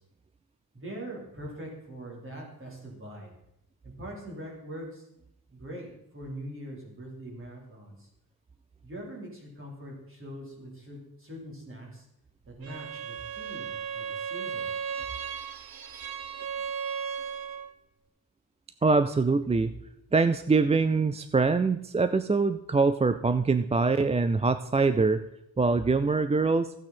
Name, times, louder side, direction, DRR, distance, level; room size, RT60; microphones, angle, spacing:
voice 1, 0.7-3.3 3.8-5.0 5.5-5.9 6.1-8.1 8.8-12.0 12.5-14.6, right 1 dB, 35° right, -2 dB, 3.9 m, -42 dB
Bowed string instrument, 12.6-17.8, right 7 dB, 70° right, 0.9 m, -35 dB
voice 2, 18.8-19.7 20.1-25.3 25.6-26.7, right 4 dB, 20° right, 11 dB, 0.3 m, -24 dB
14.0 x 8.8 x 4.3 m, 0.81 s
wide cardioid pair, 120°, 37 cm